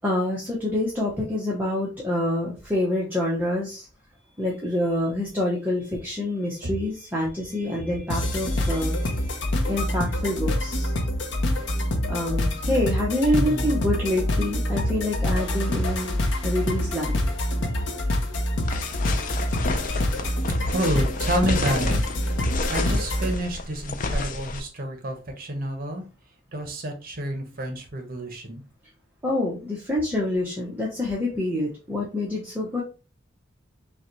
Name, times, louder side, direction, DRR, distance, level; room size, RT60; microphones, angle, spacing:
voice 1, 0.0-3.8 4.4-10.9 12.1-16.2 16.4-17.1 29.2-32.8, left 1 dB, 10° right, -4 dB, 0.8 m, -27 dB
sound 1, 8.1-23.3, left 1 dB, 70° left, 0.7 m, -26 dB
voice 2, 13.3-13.7 20.7-22.0 22.7-26.0 26.5-28.6, right 1 dB, 50° right, 4 dB, 0.9 m, -29 dB
sound 2, 18.6-24.6, left 3 dB, 45° left, 0.4 m, -31 dB
5.3 x 2.3 x 3.0 m, 0.33 s
head